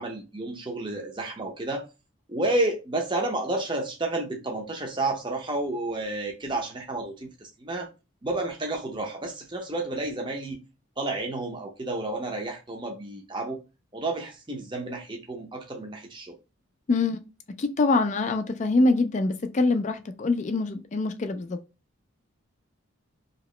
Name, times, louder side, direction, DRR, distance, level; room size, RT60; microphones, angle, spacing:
voice 1, 0.0-1.9 2.3-7.9 8.2-10.6 11.0-13.6 13.9-16.3, right 2 dB, 25° right, 0.6 m, -31 dB
voice 2, 16.9-17.2 17.6-21.6, left 3 dB, 35° left, 0.3 m, -24 dB
2.9 x 2.8 x 3.1 m
head